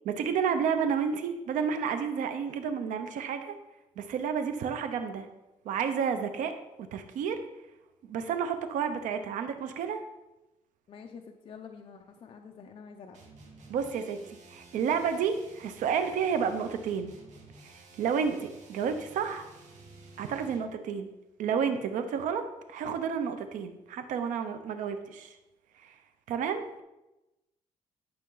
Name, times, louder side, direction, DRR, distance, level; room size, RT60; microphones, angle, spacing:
voice 1, 0.0-3.5 4.0-5.3 5.6-6.5 6.9-7.4 8.1-10.0 13.7-14.2 14.5-17.1 17.6-19.5 20.2-21.1 21.4-25.4 25.8-25.9 26.3-26.8, right 7 dB, 90° right, 8 dB, 0.9 m, -31 dB
voice 2, 10.9-13.2, left 6 dB, 45° left, 3 dB, 0.7 m, -47 dB
sound 1, 13.1-20.7, right 3 dB, 70° right, 2.0 m, -53 dB
12.0 x 6.6 x 3.9 m, 0.98 s
cardioid pair, 145°, 13 cm